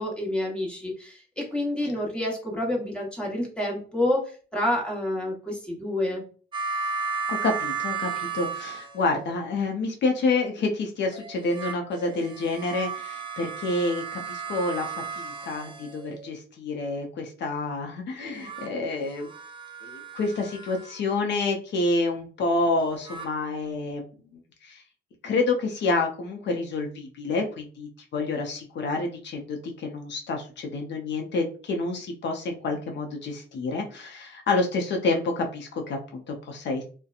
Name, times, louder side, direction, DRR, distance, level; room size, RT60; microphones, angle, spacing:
voice 1, 0.0-4.2 4.5-6.2, left 1 dB, 5° left, -2 dB, 1.0 m, -28 dB
sound 1, 6.5-9.4 11.1-16.3 18.2-21.0 22.8-23.3, right 5 dB, 25° right, 0.5 m, -35 dB
voice 2, 7.3-19.3 19.8-24.1 24.3-24.8 25.2-36.8, left 3 dB, 60° left, 2 dB, 0.6 m, -28 dB
2.7 x 2.1 x 2.4 m, 0.39 s
cardioid pair, 90°, 20 cm